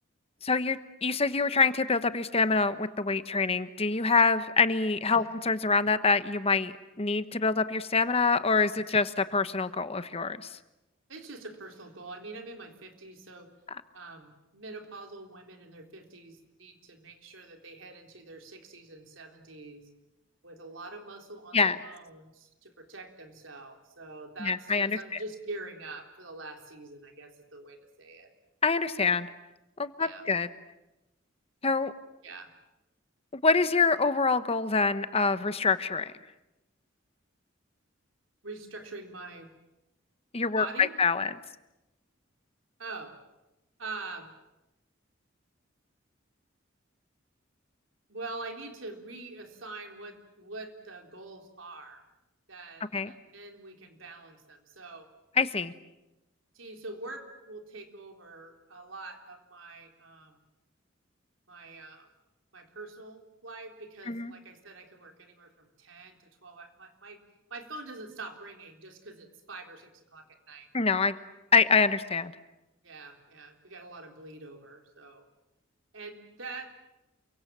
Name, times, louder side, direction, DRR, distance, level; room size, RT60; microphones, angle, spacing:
voice 1, 0.4-6.7 7.0-10.5 21.5-21.8 24.4-25.0 28.6-29.3 29.8-30.5 31.6-31.9 33.4-36.1 40.3-41.3 52.9-53.1 55.4-55.7 64.1-64.3 70.7-71.1 71.5-72.3, left 4 dB, 30° left, 12 dB, 1.0 m, -25 dB
voice 2, 11.1-13.5 13.9-19.9 20.4-28.3 30.0-30.2 32.2-32.5 38.4-39.5 40.6-40.9 42.8-43.2 43.8-44.3 48.1-52.0 52.5-55.1 56.5-60.4 61.5-62.1 62.5-67.2 67.5-70.7 72.8-75.2 75.9-76.7, right 3 dB, 85° right, 4 dB, 3.8 m, -45 dB
28.5 x 24.0 x 7.5 m, 0.96 s
head